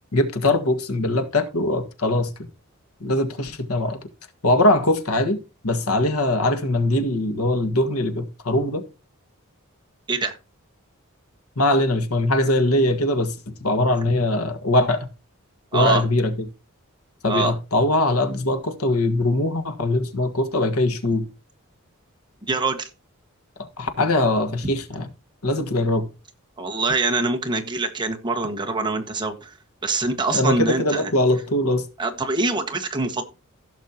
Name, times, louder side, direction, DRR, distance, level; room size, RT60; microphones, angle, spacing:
voice 1, 0.1-2.3 3.0-4.0 4.4-8.8 11.6-15.1 15.7-16.5 17.2-21.3 23.6-25.1 25.4-26.1 30.3-31.8, left 1 dB, 90° left, 1.7 m, -21 dB
voice 2, 15.7-16.0 17.3-17.5 22.5-22.9 26.6-29.5 29.8-31.1 32.0-33.2, right 3 dB, 20° right, 1.6 m, -24 dB
16.0 x 6.5 x 2.9 m
head